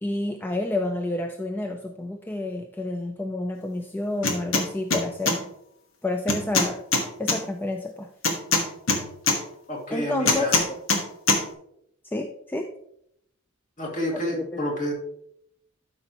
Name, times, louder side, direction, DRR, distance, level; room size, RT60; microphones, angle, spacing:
voice 1, 0.0-5.5 6.0-6.8 7.2-8.1 9.9-10.8 12.1-12.7 14.1-14.7, left 2 dB, 10° left, 4 dB, 0.4 m, -29 dB
sound 1, 4.2-4.6 4.9-5.4 6.3-7.4 8.2-9.4 10.3-11.0 11.3-11.4, left 3 dB, 75° left, 1.3 m, -22 dB
voice 2, 9.7-10.6 13.8-14.9, left 1 dB, 40° left, -1 dB, 2.2 m, -29 dB
12.5 x 5.3 x 2.9 m, 0.74 s
head